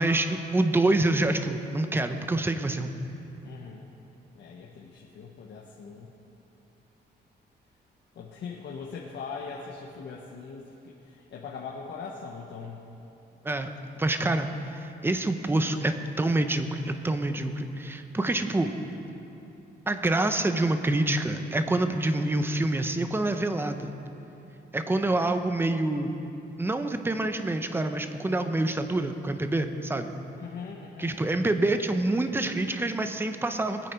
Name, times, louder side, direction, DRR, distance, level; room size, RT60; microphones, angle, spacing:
voice 1, 0.0-2.9 13.4-13.7 14.0-18.7 19.9-23.9 24.7-26.2 26.6-30.1 31.0-33.9, right 2 dB, 10° right, 7 dB, 0.7 m, -26 dB
voice 2, 3.4-3.9 4.3-6.1 8.1-12.9 24.8-25.3 30.4-31.2, left 5 dB, 70° left, -2 dB, 1.2 m, -41 dB
21.0 x 8.9 x 4.5 m, 2.8 s
cardioid pair, 140°, 19 cm